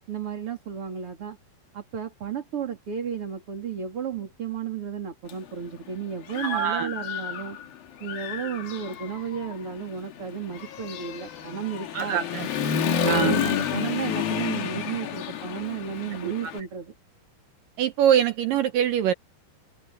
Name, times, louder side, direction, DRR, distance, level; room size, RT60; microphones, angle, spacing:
voice 1, 0.1-1.4 1.7-7.6 8.0-12.2 13.1-16.9, right 7 dB, 35° right, 3.9 m, -33 dB
Human voice / Motorcycle, 5.3-5.4 5.9-7.7 8.0-16.6, left 8 dB, 65° left, 3.5 m, -30 dB
voice 2, 6.4-6.9 11.9-12.5 13.0-13.4 16.2-16.3 17.8-19.1, right 10 dB, 75° right, 2.2 m, -23 dB
omnidirectional pair, 4.7 m